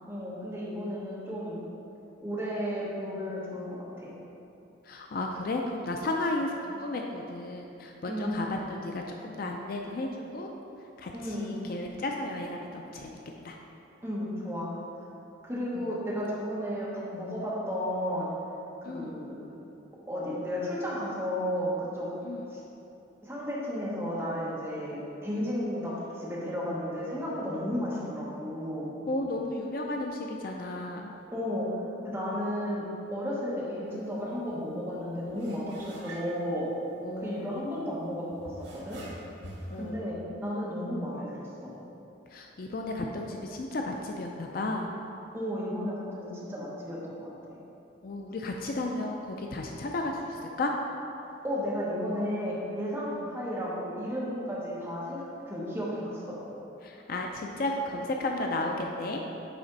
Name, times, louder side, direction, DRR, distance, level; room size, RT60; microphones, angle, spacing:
voice 1, 0.0-1.6 2.2-4.1 8.1-8.4 11.1-11.5 14.0-14.7 15.4-18.3 18.8-19.5 20.1-22.1 22.5-22.6 23.2-28.9 31.3-31.8 32.0-32.8 33.1-36.7 37.2-39.0 39.7-41.7 45.3-47.6 51.4-56.3, equal, 10° right, -7 dB, 1.2 m, -33 dB
voice 2, 4.8-10.5 11.0-13.2 13.4-13.6 15.7-15.9 18.8-19.2 22.2-22.6 29.1-31.2 37.0-37.8 39.7-40.1 42.3-44.9 48.0-50.7 53.1-53.3 56.8-59.2, left 2 dB, 45° left, 1 dB, 0.4 m, -34 dB
sound 1, 33.9-34.0 34.3-34.5 35.3-37.4 38.3-39.9, right 1 dB, 65° right, 1.2 m, -45 dB
9.2 x 3.4 x 3.9 m, 2.8 s
head